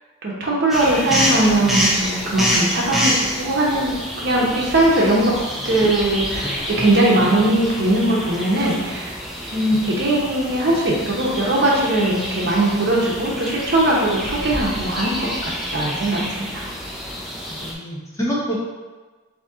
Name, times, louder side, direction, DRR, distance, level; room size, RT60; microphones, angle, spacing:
voice 1, 0.2-5.3 5.6-9.1 9.5-16.6, right 1 dB, 55° right, -3 dB, 0.8 m, -20 dB
sound 1, 0.7-17.7, equal, ahead, 0.4 m, -27 dB
voice 2, 17.5-18.5, equal, 15° left, -7 dB, 0.9 m, -27 dB
4.1 x 2.8 x 3.6 m, 1.3 s
head